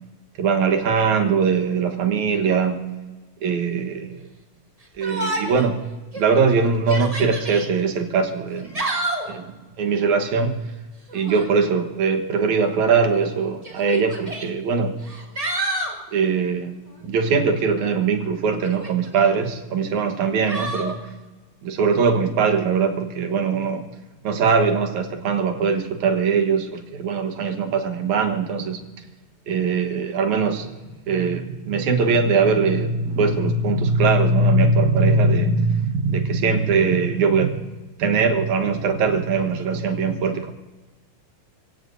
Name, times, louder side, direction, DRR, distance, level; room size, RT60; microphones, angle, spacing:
voice 1, 0.4-2.9 3.4-4.3 5.0-5.8 6.2-8.8 9.3-10.6 11.1-15.0 16.1-16.7 17.0-21.0 21.6-23.8 24.2-28.8 29.5-30.7 31.1-37.7 38.0-40.5, right 4 dB, 75° right, 5 dB, 2.8 m, -21 dB
Yell, 5.0-5.7 6.1-6.2 6.8-7.7 8.5-9.3 11.1-11.5 12.7-12.8 13.6-14.5 15.0-16.0 18.6-19.3 20.5-20.9, right 1 dB, 15° right, 1.4 m, -29 dB
29.5 x 17.0 x 2.7 m, 1.2 s
omnidirectional pair, 3.3 m